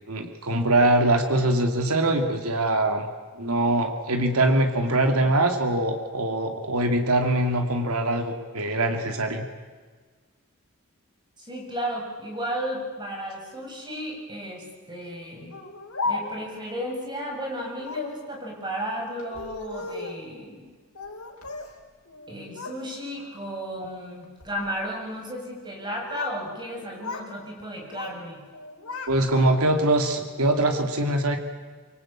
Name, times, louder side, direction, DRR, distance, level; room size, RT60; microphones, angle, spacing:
voice 1, 0.1-3.1 3.4-9.4 29.1-31.4, right 1 dB, 90° right, 5 dB, 2.4 m, -23 dB
voice 2, 11.4-15.5 16.1-20.7 22.3-28.4, equal, 20° right, 0 dB, 7.0 m, -34 dB
Speech, 15.5-16.6 17.8-18.2 19.2-20.2 20.9-21.7 22.1-22.8 23.2-23.6 24.2-24.6 25.7-26.4 26.7-27.3 27.6-28.2 28.5-29.8, left 3 dB, 90° left, 4.2 m, -35 dB
25.5 x 24.0 x 8.7 m, 1.5 s
head